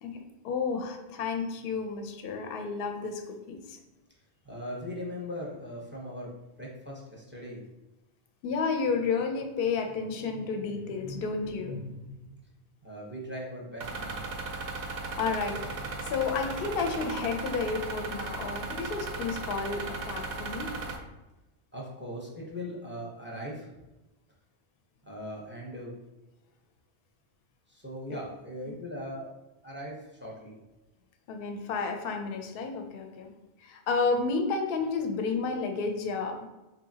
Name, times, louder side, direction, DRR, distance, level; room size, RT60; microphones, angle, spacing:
voice 1, 0.0-3.8 8.4-12.3 14.8-20.7 28.1-28.2 31.3-33.3 33.6-36.5, left 4 dB, 65° left, 5 dB, 0.7 m, -31 dB
voice 2, 4.4-6.3 6.6-7.6 12.8-14.2 21.7-23.7 25.1-25.9 27.7-29.3 29.6-30.5, equal, 15° right, -3 dB, 0.6 m, -39 dB
sound 1, 13.8-21.0, right 3 dB, 60° right, 0.5 m, -36 dB
3.9 x 2.7 x 2.7 m, 1.0 s
omnidirectional pair, 1.1 m